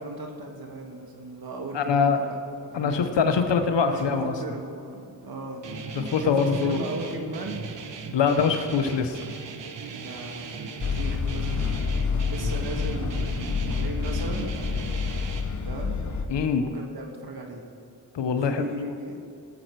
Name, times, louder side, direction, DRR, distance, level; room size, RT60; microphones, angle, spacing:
voice 1, 0.0-3.1 3.8-5.7 6.2-7.7 9.9-11.9 12.3-14.5 15.6-16.0 16.5-17.7 18.3-19.2, right 2 dB, 60° right, 2 dB, 1.8 m, -37 dB
voice 2, 1.7-2.3 2.7-4.3 5.9-6.8 8.1-9.2 16.3-16.6 18.1-18.6, left 5 dB, 85° left, 7 dB, 1.0 m, -23 dB
Guitar, 5.6-15.4, right 5 dB, 85° right, 1.1 m, -38 dB
sound 1, 10.8-16.2, left 5 dB, 45° left, 1.2 m, -28 dB
17.5 x 7.8 x 4.7 m, 2.5 s
cardioid pair, 60°, 42 cm